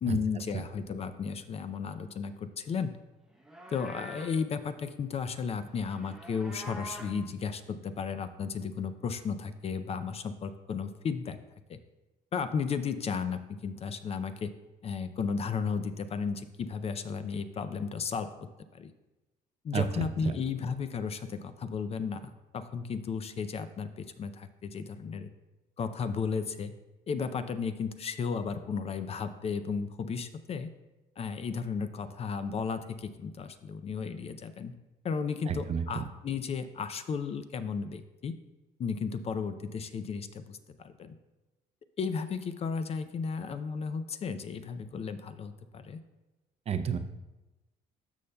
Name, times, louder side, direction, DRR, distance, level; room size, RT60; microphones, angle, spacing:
voice 1, 0.0-2.9 3.7-11.4 11.7-11.8 12.3-14.5 14.8-18.3 18.7-18.9 19.6-25.3 25.8-26.7 27.1-30.7 31.2-34.7 35.0-38.3 38.8-41.2 42.0-46.0, left 5 dB, 35° left, 11 dB, 0.4 m, -34 dB
Livestock farm animals working animals, 3.3-4.4 5.7-7.2, equal, 5° right, 0.8 m, -46 dB
voice 2, 35.5-35.8 46.7-47.0, right 7 dB, 40° right, 9 dB, 0.5 m, -29 dB
13.0 x 5.4 x 2.2 m, 1.0 s
cardioid pair, 110°, 17 cm